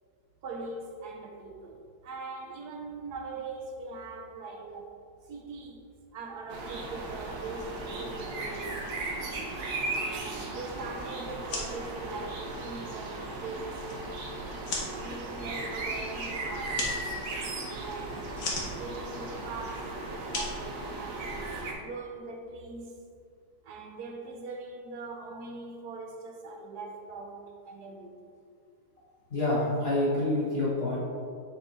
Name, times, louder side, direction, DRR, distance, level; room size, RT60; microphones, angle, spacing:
voice 1, 0.4-4.9 5.2-8.9 9.9-14.0 14.9-17.0 17.7-18.3 18.7-21.5 21.8-23.0 23.6-28.3, right 3 dB, 70° right, 1.2 m, -41 dB
sound 1, 6.5-21.7, right 2 dB, 85° right, 1.6 m, -36 dB
sound 2, 11.4-21.5, left 2 dB, 85° left, 1.8 m, -40 dB
voice 2, 29.3-31.0, left 1 dB, 40° left, 1.3 m, -27 dB
7.2 x 4.2 x 4.0 m
omnidirectional pair, 1.8 m